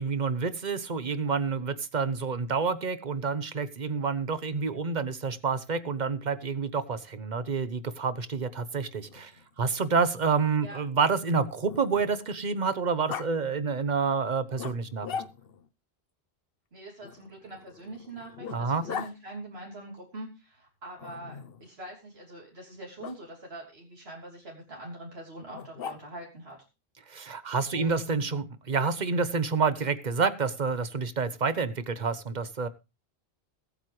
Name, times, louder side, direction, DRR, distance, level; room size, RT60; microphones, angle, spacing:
voice 1, 0.0-9.3 9.6-15.2 18.5-18.9 27.1-32.7, right 5 dB, 45° right, 13 dB, 1.1 m, -28 dB
Growling, 9.0-12.4 13.1-13.3 14.6-15.7 17.0-19.1 21.0-21.7 23.0-23.2 25.5-26.3, left 7 dB, 65° left, 1.0 m, -41 dB
voice 2, 16.7-26.6 27.7-28.1, right 1 dB, 70° right, -2 dB, 3.5 m, -43 dB
21.5 x 9.0 x 3.2 m, 0.27 s
omnidirectional pair, 1.1 m